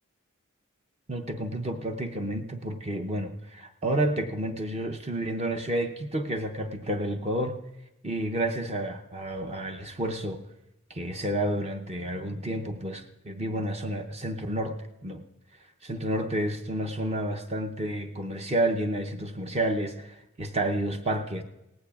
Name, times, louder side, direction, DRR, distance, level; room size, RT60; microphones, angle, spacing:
voice 1, 1.1-7.6 8.0-10.4 10.9-14.8 15.0-15.2 15.8-21.4, right 1 dB, 30° right, 4 dB, 0.6 m, -30 dB
18.0 x 15.5 x 2.4 m, 0.94 s
head